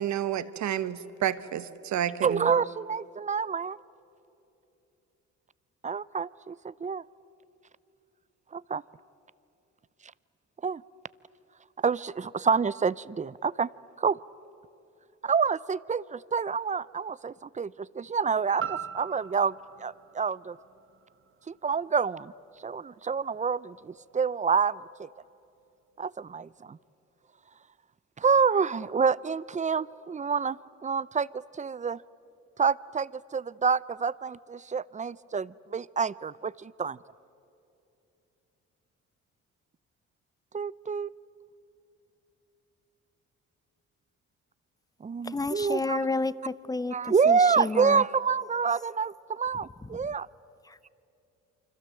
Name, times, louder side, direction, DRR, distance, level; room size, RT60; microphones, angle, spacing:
voice 1, 0.0-2.5, right 11 dB, 70° right, 13 dB, 1.2 m, -30 dB
voice 2, 2.2-3.8 5.8-7.0 8.5-8.8 10.6-10.8 11.8-13.7 14.0-14.2 15.2-20.6 21.5-22.3 22.6-25.1 26.0-26.8 28.2-30.6 30.8-32.0 32.6-37.0 40.5-41.1 45.0-46.0 46.9-50.3, right 5 dB, 25° right, 19 dB, 0.6 m, -28 dB
sound 1, 18.6-22.7 23.1-23.2, right 8 dB, 45° right, 1.0 m, -41 dB
voice 3, 45.2-48.0 49.8-49.9 50.6-50.9, left 3 dB, 10° left, 17 dB, 0.7 m, -31 dB
28.5 x 25.0 x 7.7 m, 2.8 s
cardioid pair, 90°, 30 cm